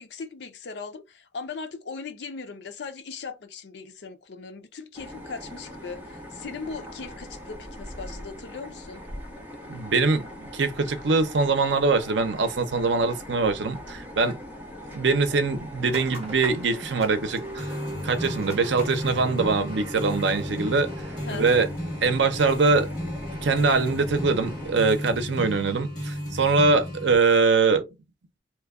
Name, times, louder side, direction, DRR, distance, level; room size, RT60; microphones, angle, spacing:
voice 1, 0.0-9.0 21.2-21.6, left 4 dB, 70° left, 0.6 m, -38 dB
sound 1, 4.9-24.7, equal, 10° right, 0.9 m, -41 dB
voice 2, 9.7-14.4 14.9-17.7 18.0-20.9 21.3-21.7 22.0-22.9 23.4-27.8, right 4 dB, 80° right, 0.6 m, -23 dB
sound 2, 15.9-21.6, right 1 dB, 35° right, 1.1 m, -40 dB
sound 3, 17.6-27.2, equal, 45° left, 1.4 m, -34 dB
3.0 x 2.2 x 3.5 m
head